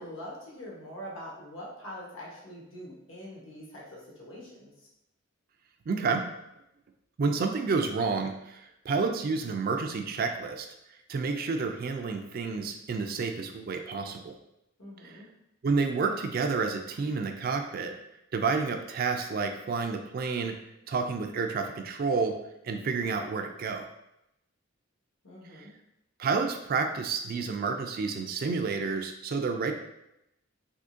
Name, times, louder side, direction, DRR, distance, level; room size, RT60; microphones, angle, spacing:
voice 1, 0.0-4.9 14.8-15.3 25.2-25.7, equal, 75° left, -4 dB, 1.2 m, -44 dB
voice 2, 5.9-6.2 7.2-10.7 11.1-14.3 15.0-15.2 15.6-17.9 18.3-20.5 20.9-22.4 22.6-23.8 25.5-25.6 26.2-29.7, right 4 dB, 45° right, 5 dB, 0.3 m, -30 dB
3.6 x 2.8 x 2.6 m, 0.85 s
head